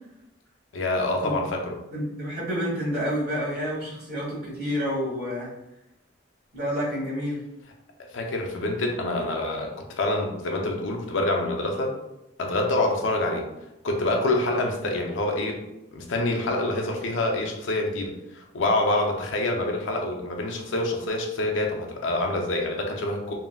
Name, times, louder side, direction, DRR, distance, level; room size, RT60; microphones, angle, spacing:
voice 1, 0.7-1.8 8.1-11.9 12.4-13.5 13.8-15.7 15.9-23.3, left 2 dB, 85° left, 2 dB, 0.5 m, -26 dB
voice 2, 1.9-5.5 6.5-7.4, equal, 55° right, -6 dB, 1.3 m, -29 dB
3.6 x 2.0 x 2.2 m, 0.91 s
head